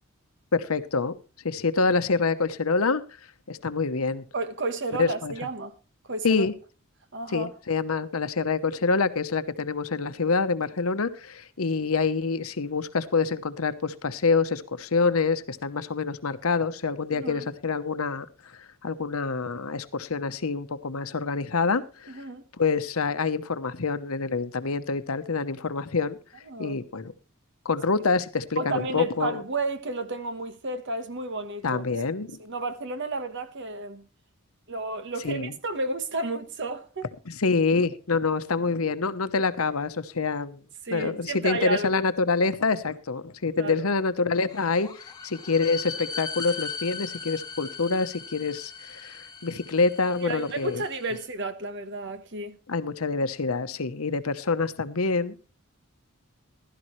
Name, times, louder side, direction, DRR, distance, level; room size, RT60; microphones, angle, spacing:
voice 1, 0.5-1.1 1.4-3.0 3.5-4.2 5.0-5.3 6.2-6.5 7.3-18.3 18.6-22.2 22.6-26.2 26.6-27.1 27.6-29.4 31.6-32.4 35.2-35.5 37.3-40.6 40.9-44.9 45.2-50.8 52.7-55.5, left 4 dB, 80° left, 0.9 m, -26 dB
voice 2, 4.3-5.7 6.1-6.4 7.1-7.5 17.1-17.5 22.1-22.4 26.5-26.8 28.6-31.8 32.4-34.1 34.7-37.1 40.8-42.0 43.6-43.9 50.2-52.6, right 2 dB, 55° right, 1.3 m, -32 dB
sound 1, 44.5-51.2, left 5 dB, 20° left, 2.0 m, -39 dB
15.5 x 12.0 x 3.2 m
head